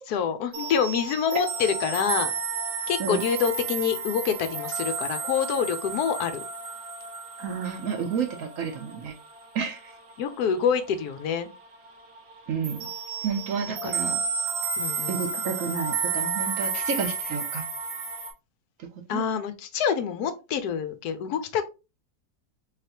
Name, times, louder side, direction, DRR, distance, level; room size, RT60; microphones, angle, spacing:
voice 1, 0.1-2.3 2.9-6.3 10.2-11.5 13.6-13.9 14.8-15.2 19.1-21.7, left 7 dB, 75° left, 1.1 m, -26 dB
sound 1, 0.5-10.9 11.2-11.6 11.9-18.3, right 5 dB, 90° right, 1.8 m, -32 dB
voice 2, 7.4-9.1 9.5-9.9 12.5-12.9 13.2-14.2 15.1-17.6 19.1-19.2, right 6 dB, 65° right, 0.9 m, -30 dB
4.0 x 3.3 x 2.8 m
omnidirectional pair, 1.7 m